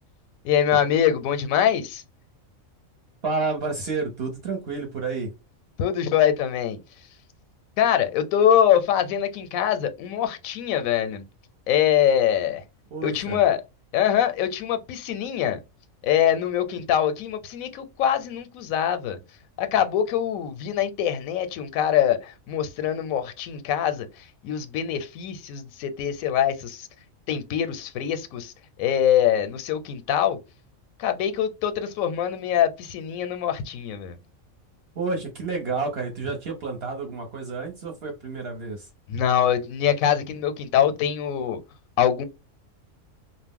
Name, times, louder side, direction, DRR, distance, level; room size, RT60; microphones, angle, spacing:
voice 1, 0.4-2.0 5.8-6.8 7.8-11.2 11.7-12.6 13.0-13.6 13.9-15.6 16.0-19.2 19.6-26.9 27.3-28.5 28.8-30.4 31.0-34.2 39.1-41.6 42.0-42.2, left 9 dB, 90° left, 1.0 m, -23 dB
voice 2, 3.2-5.3 12.9-13.4 35.0-38.9, right 4 dB, 55° right, 0.8 m, -30 dB
2.3 x 2.0 x 3.5 m
omnidirectional pair, 1.4 m